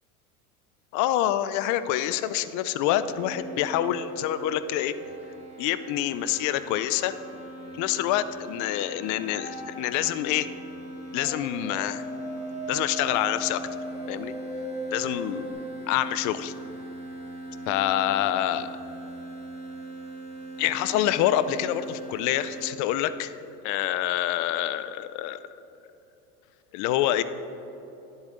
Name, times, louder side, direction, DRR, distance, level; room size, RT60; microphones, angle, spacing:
voice 1, 0.9-4.9 5.6-7.1 7.8-10.5 11.1-12.0 12.7-13.6 14.1-14.3 14.9-15.5 15.9-16.5 17.7-18.7 20.6-23.4 23.6-25.4 26.7-27.2, left 12 dB, 45° left, 14 dB, 0.5 m, -26 dB
sound 1, 3.1-22.7, right 2 dB, 15° right, 1.6 m, -40 dB
sound 2, 9.3-10.2 11.2-15.5, equal, 75° left, 2.3 m, -38 dB
10.5 x 8.0 x 3.8 m, 3.0 s
hypercardioid pair, 95°, 44 cm